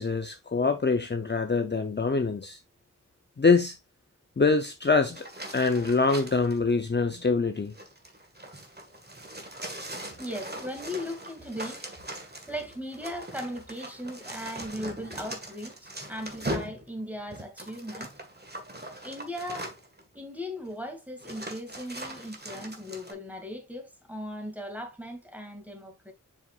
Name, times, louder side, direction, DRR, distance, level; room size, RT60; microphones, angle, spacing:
voice 1, 0.0-2.6 3.4-3.8 4.4-5.3 5.5-7.7, left 4 dB, 35° left, 0.7 m, -24 dB
sound 1, 5.1-6.6 7.6-20.0 20.7-20.8 21.2-23.1, right 1 dB, 30° right, 1.7 m, -40 dB
voice 2, 10.2-11.9 12.5-18.1 19.0-19.7 20.1-26.1, equal, 5° right, 2.3 m, -38 dB
7.5 x 5.5 x 2.4 m
wide cardioid pair, 60°, 32 cm